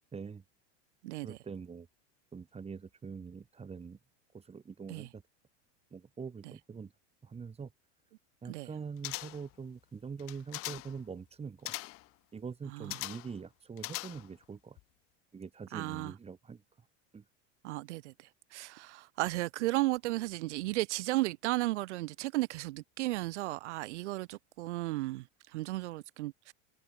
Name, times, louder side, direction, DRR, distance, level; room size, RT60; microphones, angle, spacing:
voice 1, 0.1-0.4 1.2-1.9 2.3-4.0 4.3-5.2 5.9-6.9 7.2-7.7 8.4-11.7 12.3-14.8 15.3-16.6 17.1-17.2, right 5 dB, 15° right, 3.4 m, -44 dB
voice 2, 1.0-1.4 4.9-5.1 8.5-8.7 12.7-12.9 15.7-16.1 17.6-26.5, right 18 dB, 85° right, 0.8 m, -34 dB
sound 1, 9.0-9.6 10.2-11.0 11.7-12.1 12.9-13.4 13.8-14.4 14.8-14.9, left 20 dB, 40° left, 0.8 m, -41 dB
supercardioid pair, 125°, 34 cm